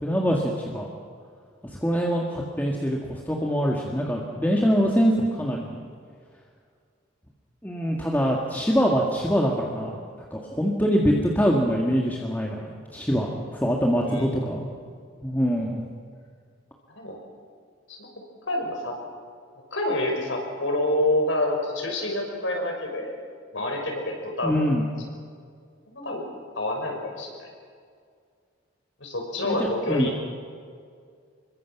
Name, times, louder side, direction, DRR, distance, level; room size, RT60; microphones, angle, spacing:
voice 1, 0.0-0.9 1.8-5.8 7.6-10.0 10.3-14.7 15.2-15.8 24.4-24.8 29.4-29.6 29.9-30.1, equal, 10° left, -2 dB, 1.9 m, -24 dB
voice 2, 14.0-14.4 16.9-17.2 17.9-18.1 18.5-19.0 19.7-23.2 23.5-24.6 25.9-26.2 26.6-27.5 29.0-30.1, left 1 dB, 85° left, 2 dB, 5.8 m, -27 dB
26.5 x 22.5 x 6.0 m, 2.1 s
head